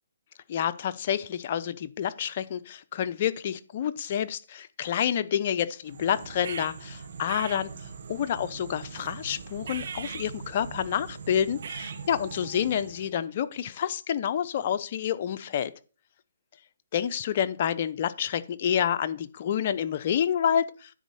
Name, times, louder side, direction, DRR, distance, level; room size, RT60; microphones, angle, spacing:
voice 1, 0.5-7.7 8.1-15.7 16.9-20.9, left 9 dB, 45° left, 12 dB, 0.7 m, -28 dB
sound 1, 5.9-13.1, right 5 dB, 60° right, 1.3 m, -40 dB
10.0 x 4.1 x 6.9 m, 0.38 s
hypercardioid pair, 145°, 0 cm